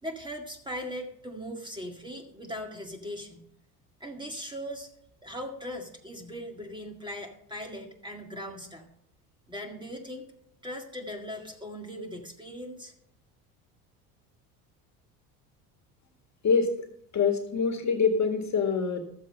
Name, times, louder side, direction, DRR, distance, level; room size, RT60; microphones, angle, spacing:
voice 1, 0.0-3.4 4.0-4.9 5.2-8.9 9.5-10.3 10.6-12.9, equal, 10° right, 2 dB, 2.1 m, -39 dB
voice 2, 16.4-16.7 17.1-19.0, left 5 dB, 35° left, 6 dB, 1.9 m, -25 dB
13.0 x 7.5 x 5.4 m, 0.71 s
hypercardioid pair, 70°, 46 cm